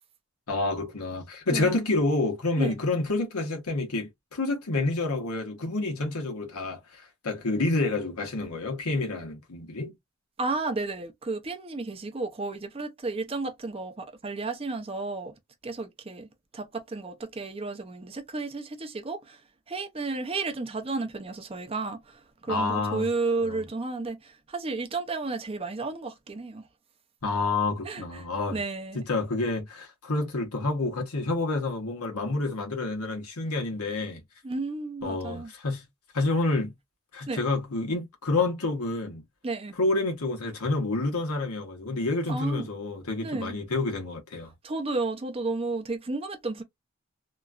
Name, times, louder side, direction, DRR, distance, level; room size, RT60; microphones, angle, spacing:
voice 1, 0.5-9.9 22.5-23.1 23.4-23.6 27.2-28.6 28.9-34.2 35.0-35.8 36.1-36.7 37.1-39.2 39.8-44.5, left 2 dB, 90° left, 1.1 m, -28 dB
voice 2, 10.4-15.3 15.6-16.3 16.5-19.4 19.7-26.6 27.8-28.2 28.5-29.0 34.4-35.5 37.3-37.4 39.4-39.7 42.3-42.7 43.2-43.6 44.6-46.6, right 3 dB, 25° right, 0.5 m, -32 dB
2.9 x 2.3 x 2.4 m
head